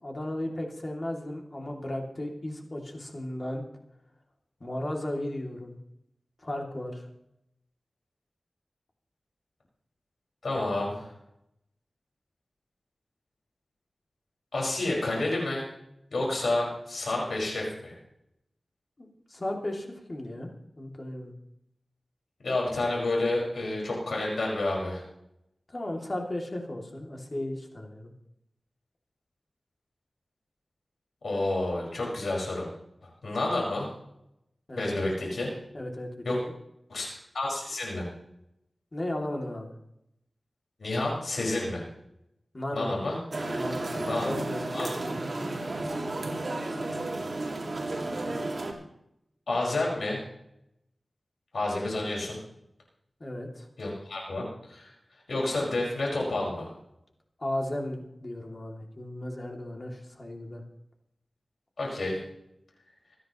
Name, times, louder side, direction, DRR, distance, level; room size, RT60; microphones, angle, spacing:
voice 1, 0.0-3.6 4.6-5.8 6.4-7.1 19.0-20.5 20.8-21.3 25.7-28.1 34.7-35.0 35.7-36.5 38.9-39.7 42.5-42.9 43.5-45.2 53.2-53.7 57.4-60.6, left 1 dB, 40° left, 1 dB, 2.7 m, -35 dB
voice 2, 10.4-11.1 14.5-15.6 16.1-17.9 22.4-25.0 31.2-32.7 33.2-33.9 34.7-35.5 36.2-36.4 36.9-37.1 37.3-38.0 40.8-41.8 42.7-43.2 44.0-44.3 44.7-44.9 49.5-50.2 51.5-52.4 53.8-54.4 54.7-54.9 55.3-56.7 61.8-62.2, left 2 dB, 90° left, -3 dB, 5.5 m, -29 dB
sound 1, 43.3-48.7, right 2 dB, 60° right, 2.4 m, -32 dB
26.0 x 9.9 x 3.1 m, 0.81 s
wide cardioid pair, 75°, 0 cm